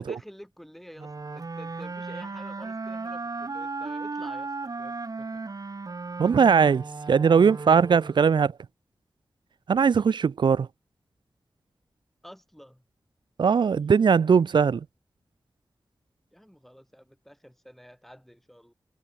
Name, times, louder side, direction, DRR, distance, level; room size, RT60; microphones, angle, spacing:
voice 1, 0.0-5.3 12.2-12.8 16.3-18.7, equal, 5° left, 7.3 m, -49 dB
sound 1, 1.0-8.4, right 3 dB, 50° right, 1.7 m, -36 dB
voice 2, 6.2-8.6 9.7-10.7 13.4-14.8, right 6 dB, 85° right, 0.7 m, -20 dB
cardioid pair, 55°, 8 cm